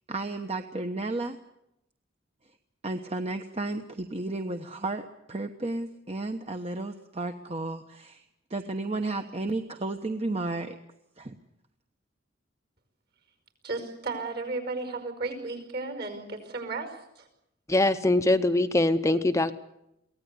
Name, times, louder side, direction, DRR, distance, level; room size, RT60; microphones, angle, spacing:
voice 1, 0.1-1.4 2.8-8.2 8.5-10.8 11.2-11.3, right 2 dB, 35° right, 6 dB, 1.1 m, -33 dB
voice 2, 13.6-17.3, right 3 dB, 55° right, 7 dB, 5.2 m, -34 dB
voice 3, 17.7-19.6, left 2 dB, 15° left, 8 dB, 0.8 m, -23 dB
23.5 x 17.0 x 9.6 m, 0.84 s
head